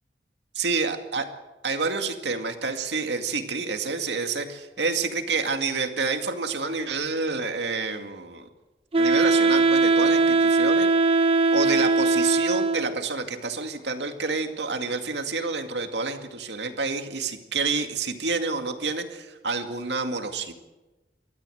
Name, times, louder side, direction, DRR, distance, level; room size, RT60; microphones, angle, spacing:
voice 1, 0.5-1.3 1.6-8.5 9.0-10.9 11.5-20.5, right 4 dB, 80° right, 6 dB, 2.2 m, -28 dB
Wind instrument woodwind instrument, 8.9-13.0, right 3 dB, 35° right, 1.1 m, -20 dB
28.5 x 13.5 x 7.9 m, 1.1 s
head